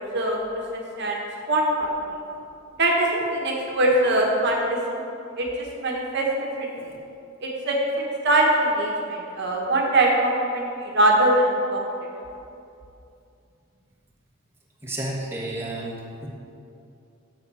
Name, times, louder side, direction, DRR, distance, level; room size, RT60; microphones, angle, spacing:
voice 1, 0.7-1.9 2.8-5.0 5.4-5.5 5.8-6.3 6.6-6.7 7.4-11.8, right 1 dB, 60° right, -1 dB, 1.3 m, -22 dB
voice 2, 14.8-16.3, right 1 dB, 10° right, -4 dB, 1.5 m, -31 dB
7.8 x 6.6 x 6.9 m, 2.6 s
head